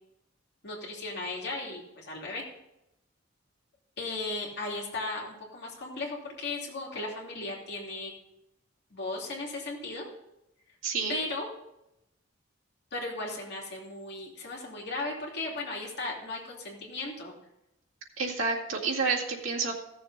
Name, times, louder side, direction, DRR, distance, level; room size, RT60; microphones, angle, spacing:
voice 1, 0.6-2.4 4.0-8.1 8.9-10.1 11.1-11.5 12.9-17.3, left 2 dB, 55° left, -2 dB, 2.8 m, -36 dB
voice 2, 10.8-11.2 18.2-19.7, right 4 dB, 85° right, -2 dB, 2.1 m, -29 dB
16.0 x 7.0 x 4.0 m, 0.85 s
head